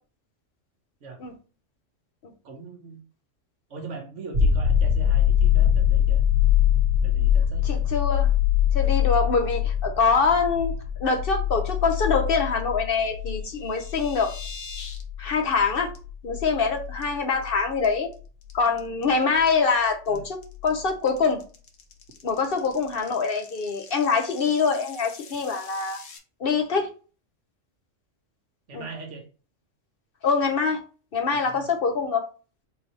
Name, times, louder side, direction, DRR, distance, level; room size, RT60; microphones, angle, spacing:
voice 1, 2.4-3.0 3.7-6.2 7.0-7.8 8.8-8.9 20.1-20.2 28.7-29.3 31.3-31.7, right 4 dB, 70° right, 3 dB, 1.3 m, -40 dB
sound 1, 4.3-17.8 20.6-20.7, left 9 dB, 45° right, 1.4 m, -23 dB
voice 2, 7.6-8.3 8.7-10.7 11.0-14.3 15.2-15.9 16.2-18.1 18.5-21.4 22.2-26.0 26.4-26.9 28.7-28.8 30.2-30.8 31.1-32.2, left 5 dB, 55° left, 4 dB, 0.8 m, -24 dB
sound 2, 13.4-15.0 15.3-15.6 15.9-16.0 16.4-16.7 17.0-17.5 17.8-26.2, left 4 dB, 80° left, 1.3 m, -45 dB
3.9 x 2.7 x 4.4 m, 0.36 s
omnidirectional pair, 1.3 m